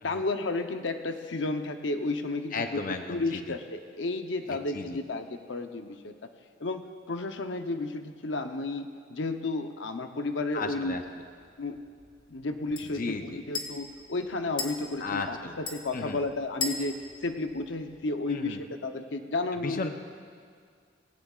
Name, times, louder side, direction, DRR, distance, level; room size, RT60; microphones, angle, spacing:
voice 1, 0.0-2.6 3.1-6.1 6.6-11.0 11.6-11.7 12.3-16.9 17.2-19.9, left 2 dB, 85° left, 6 dB, 0.8 m, -32 dB
voice 2, 2.5-3.5 4.5-5.0 10.5-11.0 12.8-13.4 15.0-15.6 15.9-16.2 18.3-18.6 19.6-19.9, left 4 dB, 50° left, 6 dB, 0.7 m, -35 dB
sound 1, 10.5-18.3, left 4 dB, 25° left, 1.4 m, -41 dB
19.5 x 17.0 x 2.4 m, 2.1 s
head